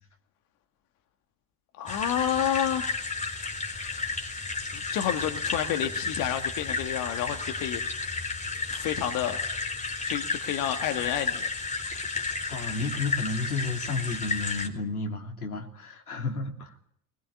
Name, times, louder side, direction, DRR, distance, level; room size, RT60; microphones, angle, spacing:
voice 1, 1.8-3.1 3.8-4.1 4.7-7.8 8.7-9.4 10.0-11.5, left 10 dB, 50° left, 6 dB, 2.1 m, -30 dB
sound 1, 1.9-14.7, left 4 dB, 15° left, 4.2 m, -32 dB
voice 2, 12.5-16.7, left 3 dB, 80° left, 1 dB, 3.3 m, -32 dB
21.0 x 20.5 x 8.7 m, 0.67 s
figure-of-eight pair, 70°, 44 cm